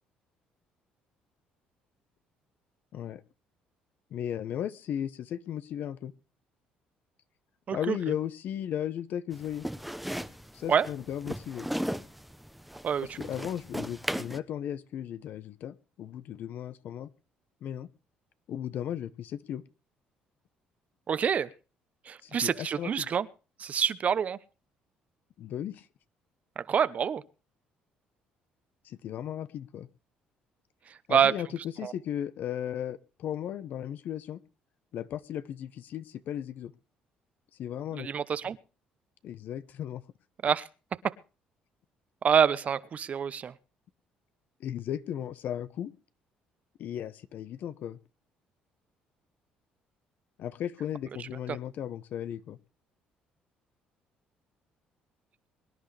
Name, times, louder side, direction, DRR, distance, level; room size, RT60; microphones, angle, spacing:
voice 1, 4.1-6.1 7.7-9.6 10.5-11.7 13.2-17.1 17.6-17.9 18.5-19.6 22.2-23.1 25.4-25.8 28.8-29.9 31.1-34.4 34.9-36.7 37.6-38.1 39.2-40.0 44.6-45.9 46.8-48.0 50.4-52.6, left 10 dB, 65° left, 1.0 m, -36 dB
sound 1, 9.3-14.4, equal, ahead, 0.9 m, -37 dB
voice 2, 12.8-13.2 21.1-21.5 22.1-23.3 23.6-24.4 26.6-27.2 31.1-31.3 31.8-31.9 37.9-38.6 40.4-40.6 42.2-43.5 51.5-51.6, right 7 dB, 45° right, 0.9 m, -26 dB
24.0 x 10.5 x 3.4 m
supercardioid pair, 80°, 3 cm